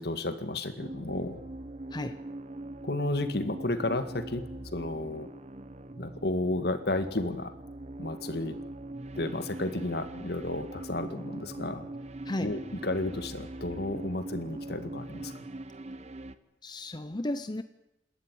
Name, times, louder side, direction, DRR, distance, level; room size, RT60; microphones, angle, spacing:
voice 1, 0.0-1.4 2.8-4.4 4.7-5.3 6.0-7.5 8.0-8.6 9.1-11.9 12.4-15.3, left 2 dB, 60° left, 10 dB, 1.9 m, -32 dB
sound 1, 0.8-16.3, right 2 dB, 40° right, 1.0 m, -42 dB
voice 2, 16.6-17.6, left 1 dB, 25° left, 10 dB, 0.7 m, -34 dB
27.5 x 13.0 x 9.3 m, 0.94 s
head